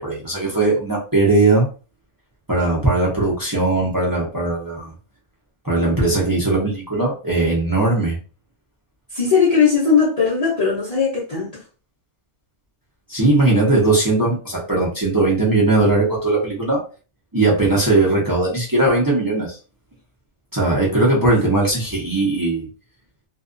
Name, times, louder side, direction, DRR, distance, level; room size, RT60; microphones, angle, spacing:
voice 1, 0.0-1.7 2.5-4.9 5.6-8.2 13.1-16.8 17.3-19.6 20.5-22.7, right 2 dB, 25° right, 0.5 m, -19 dB
voice 2, 9.1-11.6, left 6 dB, 35° left, 0.6 m, -18 dB
2.6 x 2.3 x 2.5 m
omnidirectional pair, 1.6 m